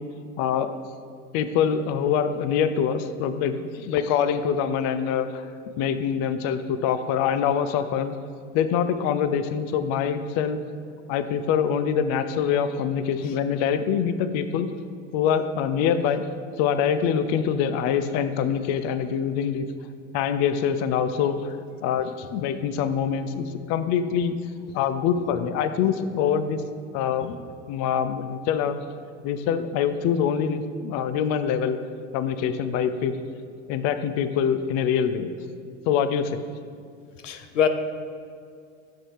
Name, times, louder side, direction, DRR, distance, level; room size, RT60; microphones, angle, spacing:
voice 1, 0.4-0.7 1.3-5.5 5.8-8.2 8.5-10.6 11.1-14.7 15.1-16.3 16.6-19.7 20.1-21.6 21.8-24.4 24.7-26.6 26.9-28.8 29.2-31.8 32.1-33.2 33.7-35.3 35.9-36.4, left 7 dB, 45° left, 11 dB, 0.5 m, -24 dB
voice 2, 37.2-37.7, left 8 dB, 90° left, 8 dB, 0.7 m, -24 dB
6.8 x 6.1 x 4.7 m, 2.2 s
hypercardioid pair, 100°, 36 cm